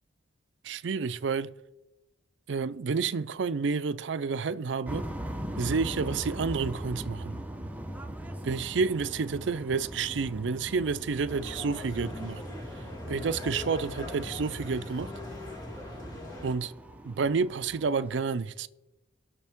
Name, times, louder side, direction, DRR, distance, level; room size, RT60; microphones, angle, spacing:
voice 1, 0.6-1.5 2.5-5.1 5.6-7.4 8.4-12.4 13.1-15.1 16.4-16.7 17.0-18.7, right 5 dB, 70° right, 0.5 m, -30 dB
sound 1, 4.9-18.1, right 1 dB, 10° right, 0.8 m, -40 dB
sound 2, 11.3-16.5, left 1 dB, 20° left, 2.2 m, -40 dB
20.0 x 6.7 x 3.6 m
head